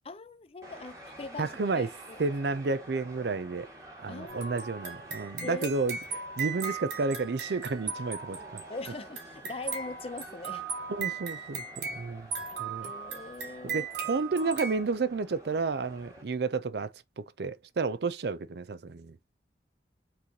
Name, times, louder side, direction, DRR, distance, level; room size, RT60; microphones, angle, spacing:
voice 1, 0.0-2.2 4.1-4.6 5.4-5.7 8.7-10.7 12.8-13.9, left 3 dB, 35° left, 0.5 m, -41 dB
sound 1, 0.6-16.2, right 1 dB, 20° right, 1.7 m, -50 dB
voice 2, 1.4-1.9 2.2-3.7 4.0-6.0 6.4-8.6 10.9-12.3 12.6-12.9 13.6-19.2, right 4 dB, 65° right, 0.5 m, -31 dB
sound 2, 4.3-14.8, right 6 dB, 85° right, 1.7 m, -38 dB
6.0 x 3.2 x 2.8 m
head